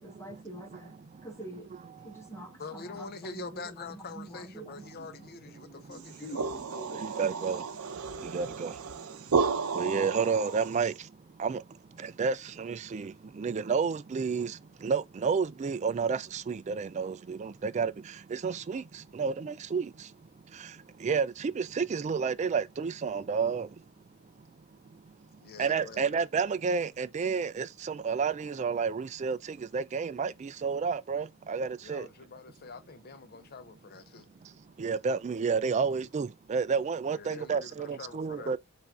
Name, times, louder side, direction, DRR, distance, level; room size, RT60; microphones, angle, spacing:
voice 1, 0.0-1.7 2.0-7.0, right 1 dB, 15° left, 1.2 m, -46 dB
voice 2, 2.6-6.5 25.4-26.2 31.8-34.3 37.1-38.6, left 4 dB, 45° left, 0.7 m, -45 dB
sound 1, 6.0-11.0, right 5 dB, 85° right, 0.6 m, -33 dB
voice 3, 7.0-7.6 8.2-8.7 9.7-10.9 11.4-11.6 12.0-14.6 14.8-17.9 18.3-18.8 19.1-19.9 21.0-23.7 25.6-32.1 34.8-38.6, right 5 dB, 30° right, 0.3 m, -30 dB
5.6 x 2.6 x 3.6 m
head